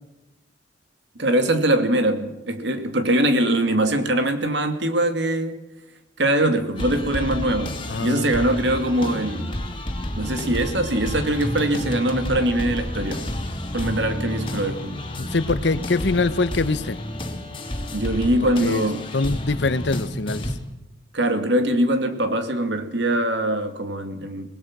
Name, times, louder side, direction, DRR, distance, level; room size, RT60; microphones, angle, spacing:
voice 1, 1.2-5.6 6.2-9.6 10.2-13.3 13.7-15.0 17.9-19.1 21.1-24.5, right 1 dB, 65° right, 2.5 m, -22 dB
sound 1, 6.8-20.5, left 1 dB, 30° left, 2.9 m, -30 dB
voice 2, 7.9-8.3 15.2-17.0 18.6-18.9 19.1-20.5, left 3 dB, 65° left, 0.9 m, -23 dB
25.0 x 19.5 x 6.1 m
head